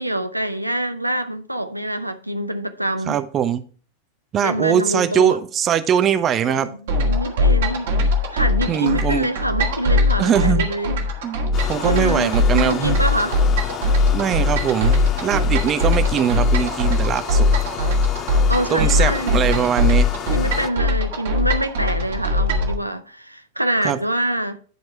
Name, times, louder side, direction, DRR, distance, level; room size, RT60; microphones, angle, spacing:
voice 1, 0.0-3.2 4.4-5.4 6.4-7.9 8.3-11.0 11.8-13.4 18.5-19.4 20.3-24.6, right 1 dB, 90° right, 0.5 m, -25 dB
voice 2, 3.1-3.6 4.3-6.7 8.7-9.3 10.2-10.7 11.2-13.0 14.1-17.5 18.7-20.1 23.8-24.0, right 9 dB, 30° right, 0.8 m, -21 dB
sound 1, 6.9-22.7, left 2 dB, 60° right, 1.8 m, -20 dB
sound 2, 11.5-20.7, left 10 dB, 30° left, 0.4 m, -32 dB
11.0 x 4.6 x 4.5 m
figure-of-eight pair, 90°, 0 cm